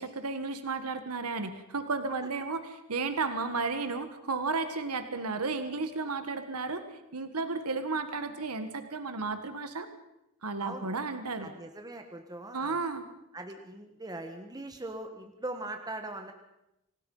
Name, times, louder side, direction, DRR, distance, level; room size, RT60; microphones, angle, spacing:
voice 1, 0.0-6.8 7.1-9.9 10.4-11.5 12.5-13.0, right 4 dB, 90° right, 9 dB, 1.6 m, -33 dB
voice 2, 11.4-12.8 13.3-16.3, right 2 dB, 15° right, 4 dB, 1.5 m, -40 dB
26.5 x 18.5 x 5.6 m, 0.89 s
head